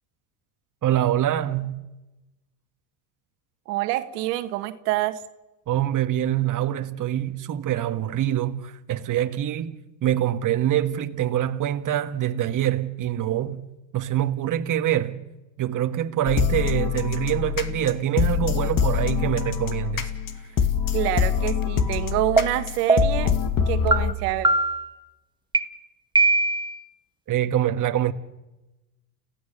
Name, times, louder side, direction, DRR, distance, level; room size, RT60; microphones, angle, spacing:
voice 1, 0.8-1.8 5.7-9.7 10.0-13.6 13.9-15.2 15.6-20.1 27.3-28.1, right 11 dB, 40° right, 1.7 m, -25 dB
voice 2, 3.7-5.2 20.9-23.3 23.7-24.5, right 16 dB, 80° right, 1.6 m, -26 dB
sound 1, 16.3-24.1, left 8 dB, 45° left, 2.4 m, -25 dB
sound 2, 22.4-22.5 22.9-23.3 23.9-24.0 24.4-24.9 25.5-25.6 26.1-26.8, right 3 dB, 10° right, 1.7 m, -20 dB
30.0 x 16.5 x 6.9 m
supercardioid pair, 85°, 47 cm